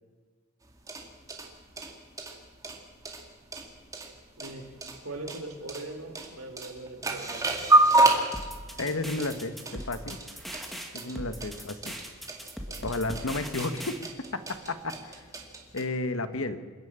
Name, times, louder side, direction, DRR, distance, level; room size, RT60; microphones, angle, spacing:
sound 1, 0.6-15.8, right 2 dB, 15° right, 2.1 m, -29 dB
voice 1, 5.0-7.7 12.7-12.9, right 2 dB, 80° right, 3 dB, 3.7 m, -41 dB
sound 2, 8.3-14.0, equal, ahead, 1.9 m, -39 dB
voice 2, 8.8-10.2 10.9-11.8 12.8-13.9 14.3-15.3 15.7-16.6, left 2 dB, 70° left, 10 dB, 1.4 m, -32 dB
27.5 x 10.5 x 8.9 m, 1.5 s
head